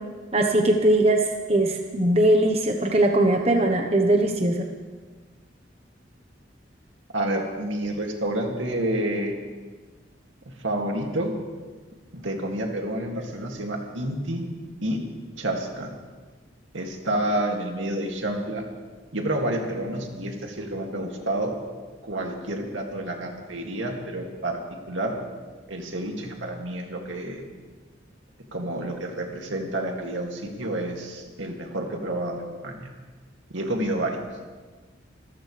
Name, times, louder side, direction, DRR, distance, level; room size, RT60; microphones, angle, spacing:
voice 1, 0.3-1.2 1.5-4.7, right 1 dB, 30° right, 3 dB, 1.1 m, -20 dB
voice 2, 7.1-9.4 10.6-11.3 12.1-14.4 14.8-15.0 15.4-15.9 16.7-18.6 19.1-21.5 22.0-25.2 25.7-27.4 28.5-32.9 33.5-34.2, right 1 dB, 85° right, 1 dB, 2.4 m, -29 dB
26.0 x 14.5 x 3.4 m, 1.4 s
head